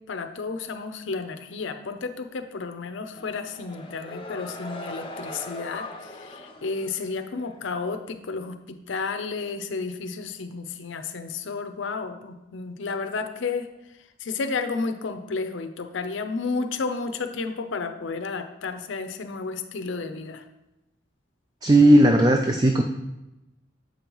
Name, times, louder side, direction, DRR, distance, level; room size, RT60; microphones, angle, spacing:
voice 1, 0.1-13.7 14.2-20.4, left 4 dB, 75° left, 7 dB, 0.5 m, -32 dB
sound 1, 3.1-7.6, left 1 dB, 25° left, 0.6 m, -40 dB
voice 2, 21.6-22.8, right 1 dB, 20° right, 4 dB, 0.3 m, -16 dB
7.4 x 5.4 x 3.0 m, 0.97 s
head